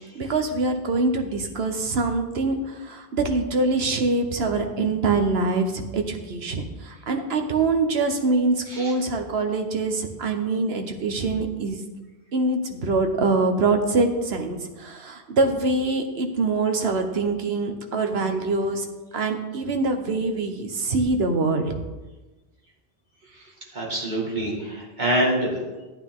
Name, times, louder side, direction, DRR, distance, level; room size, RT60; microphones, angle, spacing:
voice 1, 0.1-11.8 12.3-18.9 19.1-21.8, right 3 dB, 75° right, 5 dB, 1.3 m, -24 dB
voice 2, 23.7-25.6, right 1 dB, 45° right, -3 dB, 2.3 m, -25 dB
12.5 x 8.8 x 3.7 m, 1.2 s
omnidirectional pair, 1.1 m